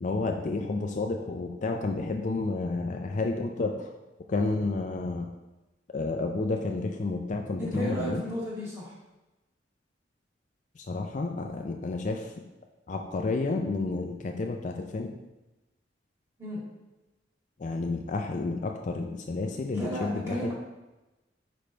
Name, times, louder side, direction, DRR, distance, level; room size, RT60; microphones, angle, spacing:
voice 1, 0.0-3.9 4.3-5.3 5.9-8.2 10.8-12.3 12.9-15.1 17.6-20.5, left 3 dB, 40° left, 3 dB, 0.4 m, -30 dB
voice 2, 7.6-8.9 16.4-16.6 19.7-20.5, equal, 15° right, -6 dB, 2.2 m, -33 dB
5.2 x 5.1 x 4.4 m, 1.1 s
head